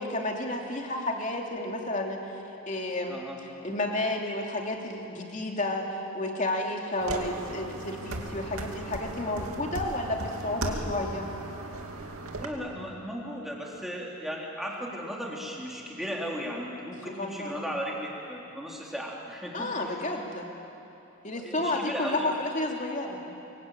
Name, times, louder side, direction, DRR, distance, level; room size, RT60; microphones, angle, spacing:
voice 1, 0.0-2.2 2.7-3.2 3.6-11.3 17.0-17.6 19.5-20.5 21.2-23.2, left 1 dB, 35° left, 1 dB, 2.9 m, -31 dB
voice 2, 3.1-3.4 12.4-19.9 21.3-22.4, equal, ahead, -3 dB, 3.6 m, -36 dB
sound 1, 7.0-12.4, right 2 dB, 75° right, 2.5 m, -36 dB
25.0 x 23.0 x 9.0 m, 2.9 s
head